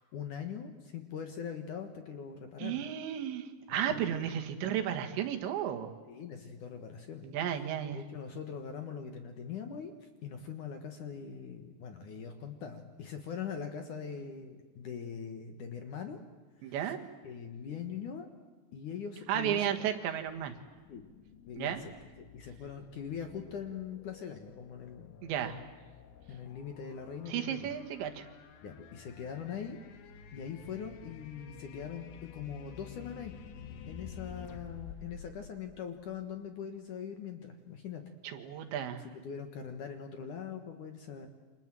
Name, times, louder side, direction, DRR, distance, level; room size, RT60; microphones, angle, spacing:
voice 1, 0.0-2.8 3.9-4.0 6.1-7.3 7.9-16.2 16.6-16.9 17.2-18.3 18.7-19.7 20.9-21.0 21.5-21.9 22.3-25.1 25.4-25.7 26.3-27.8 28.6-29.8 30.3-33.3 33.9-38.0 39.0-41.3, left 7 dB, 60° left, 6 dB, 2.4 m, -42 dB
voice 2, 2.6-5.9 7.2-8.0 16.6-17.0 19.3-20.5 21.6-21.8 25.2-25.6 27.3-28.3 38.2-39.0, right 10 dB, 80° right, 5 dB, 3.9 m, -33 dB
sound 1, 20.2-36.4, left 7 dB, 80° left, 3.8 m, -51 dB
29.0 x 26.0 x 7.7 m, 1.3 s
omnidirectional pair, 5.2 m